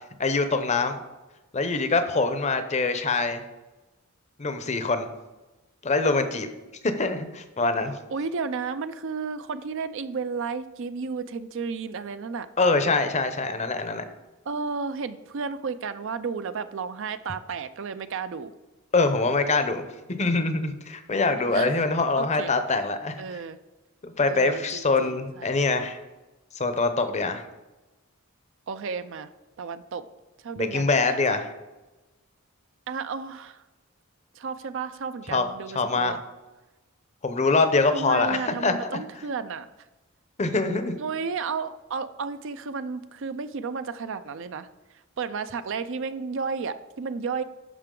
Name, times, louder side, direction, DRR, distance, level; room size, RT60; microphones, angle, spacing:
voice 1, 0.2-1.0 1.5-3.4 4.4-5.1 5.8-6.5 7.0-8.0 12.6-14.0 18.9-19.8 20.1-23.4 24.0-26.0 26.5-27.4 30.6-31.5 35.3-35.5 35.7-36.2 37.2-38.7 40.4-41.0, left 3 dB, 35° left, 9 dB, 0.7 m, -24 dB
voice 2, 8.1-12.5 14.5-18.5 21.3-21.7 22.2-22.5 23.2-23.6 24.3-25.6 28.7-29.3 29.6-30.0 30.4-31.4 32.9-33.6 34.4-36.2 37.9-39.7 41.0-44.7 45.2-47.4, right 5 dB, 60° right, 12 dB, 0.5 m, -33 dB
10.0 x 5.9 x 3.8 m, 1.1 s
head